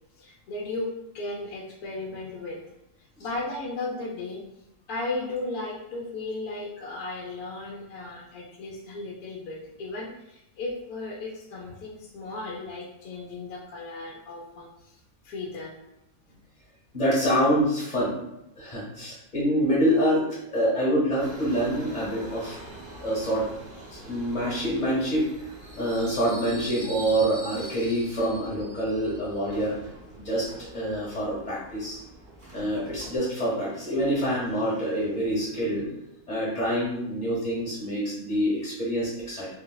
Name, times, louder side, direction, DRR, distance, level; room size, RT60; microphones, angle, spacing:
voice 1, 0.2-2.6 3.2-4.4 4.9-15.0 15.2-15.7, left 2 dB, 85° left, -3 dB, 1.1 m, -35 dB
voice 2, 16.9-18.2 18.6-22.6 23.0-23.5 23.9-25.3 25.5-29.8 30.2-32.0 32.5-35.9 36.3-39.5, equal, 40° left, -6 dB, 0.9 m, -26 dB
Subway metro underground, 21.2-33.2, right 1 dB, 45° right, 0.8 m, -44 dB
3.8 x 2.0 x 2.2 m, 0.86 s
omnidirectional pair, 1.5 m